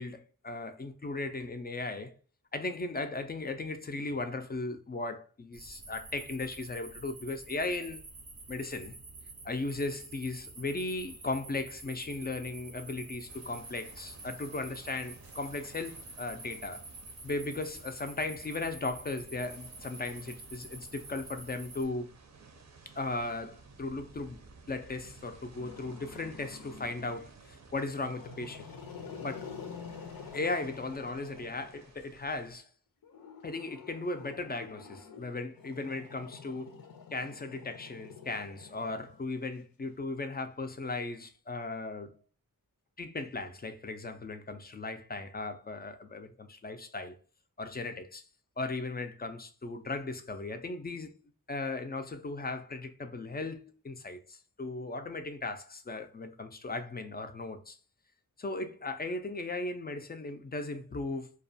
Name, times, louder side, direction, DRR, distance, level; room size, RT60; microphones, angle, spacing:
voice 1, 0.0-2.1 2.5-8.0 8.5-8.9 9.4-16.8 17.2-22.1 22.9-24.4 24.7-28.7 29.2-29.5 30.3-32.7 33.4-36.8 37.1-42.2 43.0-47.1 47.6-48.2 48.6-51.2 51.5-57.8 58.4-61.3, left 3 dB, 30° left, 0.3 m, -37 dB
sound 1, 5.5-21.8, right 3 dB, 85° right, 0.7 m, -48 dB
sound 2, 13.3-32.6, right 4 dB, 50° right, 0.5 m, -56 dB
Growling, 25.6-27.3 27.9-32.1 33.0-39.6, left 6 dB, 80° left, 0.5 m, -48 dB
2.3 x 2.1 x 2.6 m
cardioid pair, 50°, 34 cm